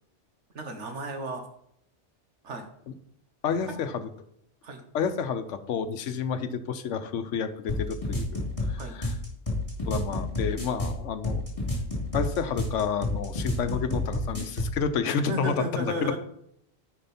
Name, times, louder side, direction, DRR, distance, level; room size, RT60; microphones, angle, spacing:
voice 1, 0.5-1.4 2.4-2.7 4.6-4.8 8.7-9.0 15.1-16.2, right 1 dB, 75° right, 5 dB, 1.6 m, -34 dB
voice 2, 3.4-4.0 4.9-9.1 9.9-11.4 12.1-16.2, left 6 dB, 85° left, 10 dB, 1.1 m, -30 dB
sound 1, 7.7-14.8, left 1 dB, 30° left, 2.6 m, -30 dB
10.5 x 4.9 x 4.2 m, 0.73 s
omnidirectional pair, 1.2 m